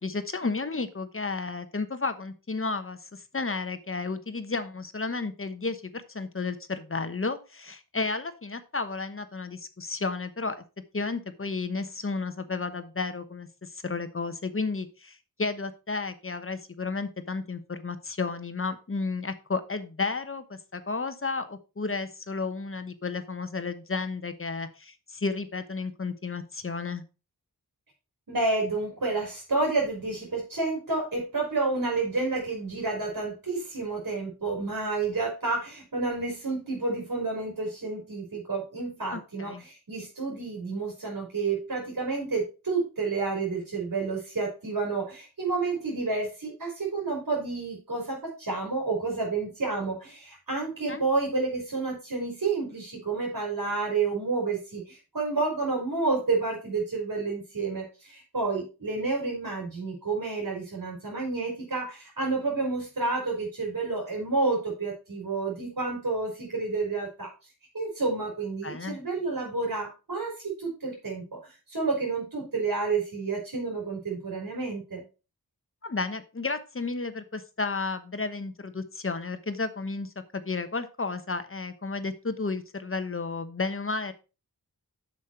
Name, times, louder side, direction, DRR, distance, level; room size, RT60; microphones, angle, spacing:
voice 1, 0.0-10.6 10.9-27.0 39.1-39.6 50.9-51.0 68.6-69.0 75.8-84.1, left 3 dB, 35° left, 10 dB, 1.1 m, -32 dB
voice 2, 28.3-67.3 67.7-75.0, right 3 dB, 65° right, -3 dB, 4.3 m, -30 dB
7.5 x 6.4 x 4.4 m, 0.31 s
wide cardioid pair, 75°, 38 cm